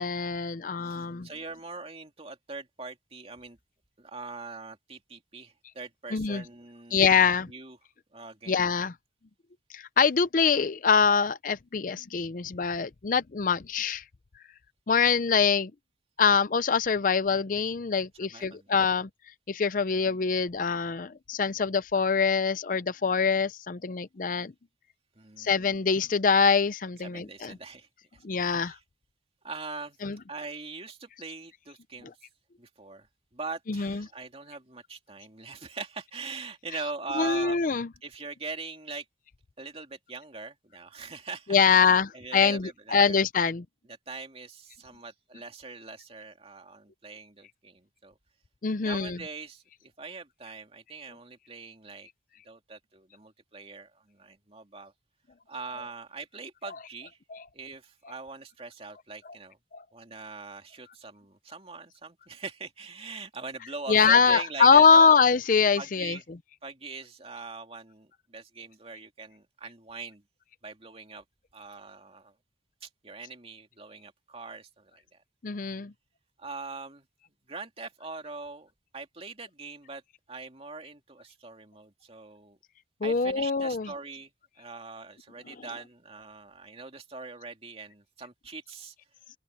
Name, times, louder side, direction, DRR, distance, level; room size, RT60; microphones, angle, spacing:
voice 1, 0.0-1.3 6.1-6.4 6.9-7.5 8.5-8.9 9.7-14.0 14.9-15.7 16.2-19.1 19.5-24.5 25.4-27.6 28.2-28.8 30.0-30.2 33.7-34.1 37.1-37.9 41.5-43.6 48.6-49.2 57.3-57.4 59.7-59.8 63.9-66.2 75.4-75.9 83.0-83.9 85.5-85.6, left 5 dB, 50° left, 0.5 m, -24 dB
voice 2, 0.8-3.6 4.0-7.8 8.1-8.7 18.2-18.7 25.1-25.5 27.0-27.9 28.4-28.8 29.4-30.0 30.3-32.1 32.6-33.1 33.3-37.6 38.0-39.0 39.6-43.2 44.1-48.2 48.8-52.1 52.4-54.9 55.5-57.2 57.5-59.6 59.9-65.2 65.8-66.2 66.6-70.2 70.6-71.2 71.5-72.3 72.8-75.2 76.4-77.1 77.5-80.0 80.3-82.6 83.0-84.3 84.6-88.9, right 4 dB, 35° right, 2.6 m, -42 dB
open air
head